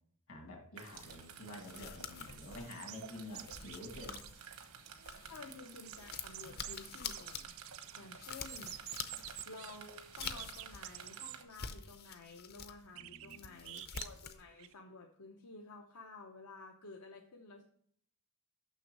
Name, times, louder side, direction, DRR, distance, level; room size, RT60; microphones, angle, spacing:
voice 1, 0.3-4.2 7.9-8.1 9.0-9.4 12.9-13.6, left 1 dB, 65° left, 0 dB, 2.3 m, -50 dB
sound 1, 0.8-11.4, right 6 dB, 90° right, 1.0 m, -53 dB
film tape, 0.9-5.5 5.9-11.0 11.4-12.8 13.1-14.4, left 7 dB, 45° left, 0.6 m, -47 dB
voice 2, 2.3-2.6 5.3-7.5 7.9-8.7 9.4-17.6, left 3 dB, 85° left, 2 dB, 0.8 m, -52 dB
sound 2, 2.7-4.3 4.6-4.7 4.9-6.8 7.1-8.0 8.4-9.8 10.2-11.4 11.8-11.9 13.0-14.7, right 16 dB, 60° right, 0.3 m, -49 dB
6.7 x 6.0 x 4.7 m, 0.63 s
head